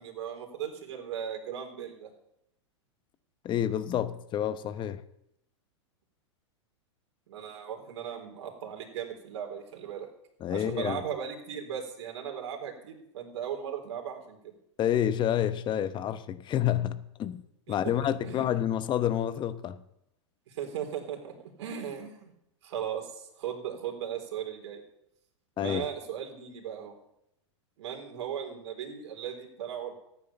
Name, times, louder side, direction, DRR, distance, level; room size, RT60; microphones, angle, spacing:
voice 1, 0.0-2.1 7.3-10.1 10.5-14.5 17.7-17.9 18.2-18.5 20.5-22.3 22.6-24.8 25.6-26.9 27.8-30.0, right 8 dB, 60° right, 3.9 m, -37 dB
voice 2, 3.4-5.0 10.4-11.0 14.8-17.4 17.7-19.8 25.6-25.8, left 10 dB, 30° left, 1.0 m, -29 dB
14.5 x 9.7 x 7.0 m
hypercardioid pair, 100°, 16 cm